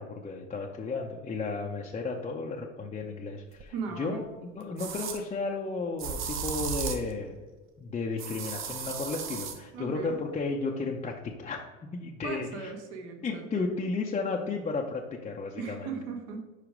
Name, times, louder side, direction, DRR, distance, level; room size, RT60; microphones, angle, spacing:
voice 1, 0.0-7.3 7.8-11.6 11.9-12.7 13.2-15.9, left 3 dB, 20° left, -1 dB, 0.6 m, -33 dB
sound 1, 3.6-3.7 4.8-5.2 6.0-7.1 8.2-9.6, right 7 dB, 35° right, 0.8 m, -35 dB
voice 2, 3.7-4.3 9.7-10.2 12.2-13.7 15.6-16.5, right 5 dB, 65° right, 3 dB, 1.3 m, -38 dB
4.9 x 4.9 x 4.9 m, 1.3 s
hypercardioid pair, 100°, 35 cm